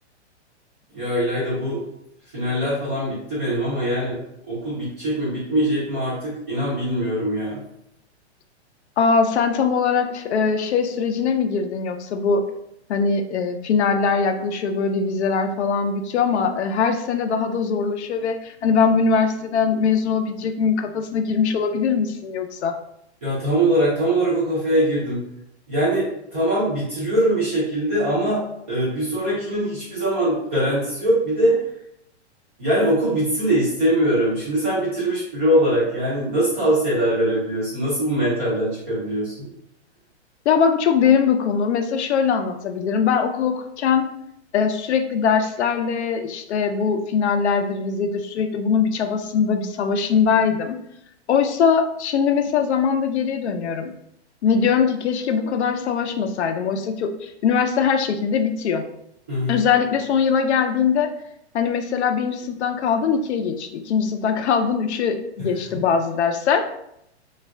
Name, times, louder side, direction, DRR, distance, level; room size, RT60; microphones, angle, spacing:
voice 1, 0.9-1.8 2.3-4.2 4.5-7.6 23.2-25.2 25.7-31.5 32.6-39.5 59.3-59.6, right 1 dB, 10° right, -9 dB, 0.4 m, -22 dB
voice 2, 9.0-12.4 12.9-22.8 40.5-44.1 44.5-50.8 51.3-53.9 54.4-58.8 59.5-61.1 61.5-66.6, left 6 dB, 75° left, 6 dB, 0.5 m, -21 dB
2.3 x 2.1 x 3.5 m, 0.77 s
hypercardioid pair, 165°, 34 cm